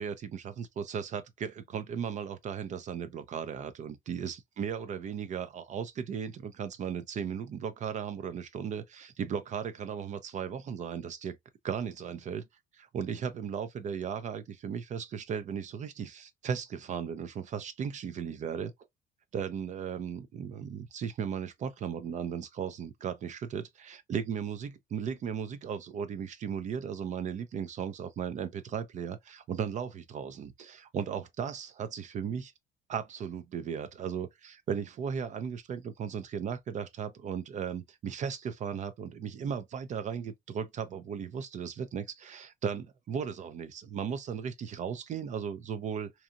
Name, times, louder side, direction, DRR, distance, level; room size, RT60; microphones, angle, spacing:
voice 1, 0.0-11.4 11.6-12.5 12.7-18.7 19.3-32.5 32.9-46.1, right 7 dB, 45° right, 0.4 m, -36 dB
2.8 x 2.3 x 2.4 m
cardioid pair, 110°, 17 cm